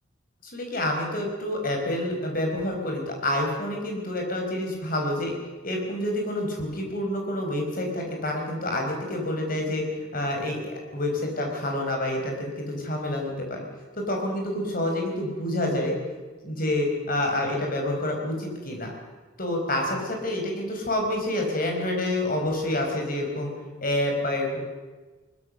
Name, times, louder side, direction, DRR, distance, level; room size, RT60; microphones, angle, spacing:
voice 1, 0.4-5.3 5.6-13.7 13.9-15.9 16.4-18.9 19.4-23.5 23.8-24.6, left 1 dB, 45° left, 1 dB, 5.0 m, -28 dB
22.0 x 20.5 x 6.5 m, 1.3 s
head